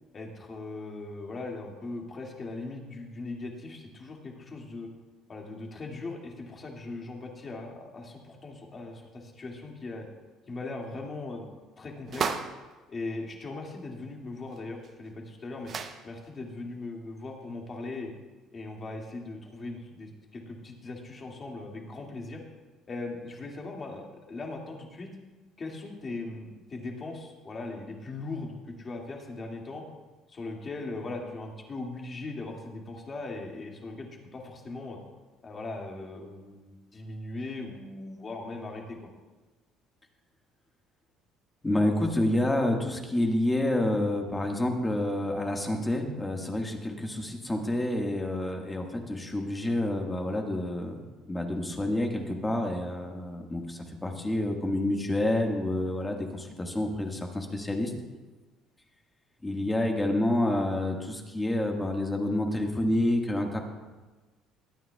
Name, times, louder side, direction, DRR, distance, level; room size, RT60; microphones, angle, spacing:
voice 1, 0.1-4.9 5.3-10.1 10.5-11.5 11.8-12.4 12.9-15.7 16.0-18.1 18.5-22.4 22.9-24.0 24.3-25.1 25.6-29.8 30.3-35.0 35.4-39.0, left 2 dB, 30° left, 0 dB, 2.2 m, -39 dB
sound 1, 12.1-12.7 14.5-14.6 14.8-14.9 15.6-16.1, right 6 dB, 45° right, 0.7 m, -32 dB
voice 2, 41.6-51.0 51.3-57.9 59.4-63.6, left 1 dB, 15° left, 2 dB, 1.6 m, -28 dB
22.5 x 9.4 x 2.3 m, 1.2 s
cardioid pair, 110°, 0 cm